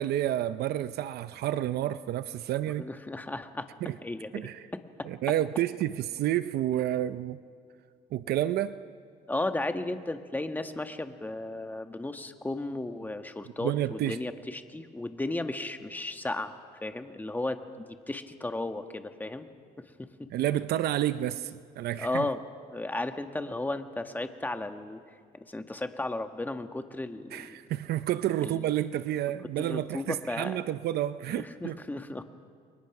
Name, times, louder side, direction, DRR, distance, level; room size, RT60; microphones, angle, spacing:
voice 1, 0.0-2.9 3.8-4.0 4.3-4.6 5.0-7.4 8.1-8.8 13.6-14.2 20.3-22.3 27.3-31.8, right 12 dB, 70° right, 13 dB, 0.7 m, -30 dB
voice 2, 2.8-3.7 4.0-4.5 5.0-5.1 9.3-16.5 16.8-19.5 19.8-20.3 22.0-22.4 22.7-25.0 25.3-27.6 28.4-28.7 29.6-30.7 31.3-32.2, left 2 dB, 10° left, 7 dB, 1.4 m, -34 dB
29.5 x 22.5 x 6.0 m, 2.1 s
cardioid pair, 110°, 17 cm